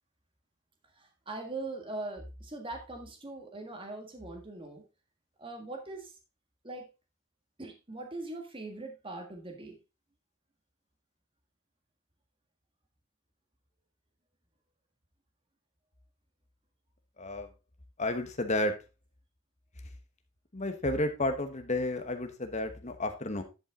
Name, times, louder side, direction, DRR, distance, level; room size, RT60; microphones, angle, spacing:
voice 1, 0.9-4.8 5.4-6.2 6.6-6.9 7.6-9.8, right 2 dB, 25° right, 3 dB, 1.6 m, -41 dB
voice 2, 17.2-17.5 18.0-18.7 20.5-23.4, left 1 dB, 35° left, 7 dB, 1.1 m, -31 dB
10.5 x 5.5 x 3.7 m, 0.28 s
head